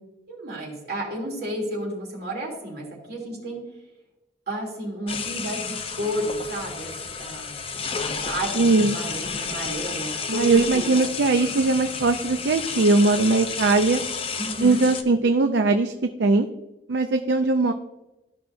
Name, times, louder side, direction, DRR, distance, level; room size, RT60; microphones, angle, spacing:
voice 1, 0.3-3.6 4.5-7.5 7.9-11.0 14.4-14.8, right 1 dB, 55° right, -3 dB, 2.8 m, -32 dB
sound 1, 5.1-15.0, left 5 dB, 30° left, 0.6 m, -31 dB
voice 2, 8.6-9.0 10.3-14.0 14.6-15.9 16.2-16.5 16.9-17.7, right 3 dB, 70° right, 6 dB, 0.5 m, -20 dB
13.0 x 5.7 x 2.6 m, 0.99 s
head